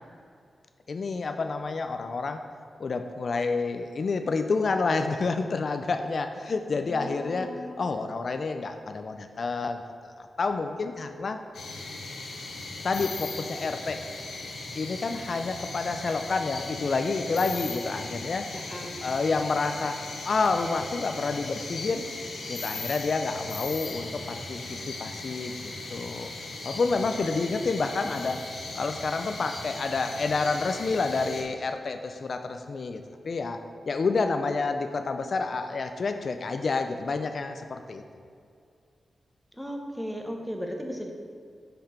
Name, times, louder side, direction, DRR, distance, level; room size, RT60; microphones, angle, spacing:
voice 1, 0.9-2.5 2.8-7.5 7.8-9.8 10.4-11.4 12.8-14.0 14.7-18.5 19.0-20.0 20.2-22.0 22.5-25.6 25.9-26.3 26.6-28.4 28.8-33.6 33.9-38.0, left 4 dB, 55° left, 7 dB, 0.3 m, -29 dB
voice 2, 6.7-7.8 18.5-19.0 27.8-28.1 39.5-41.1, equal, ahead, 2 dB, 0.8 m, -37 dB
sound 1, 11.5-31.4, left 3 dB, 90° left, 0.9 m, -38 dB
5.7 x 5.3 x 4.3 m, 2.4 s
wide cardioid pair, 105°, 0 cm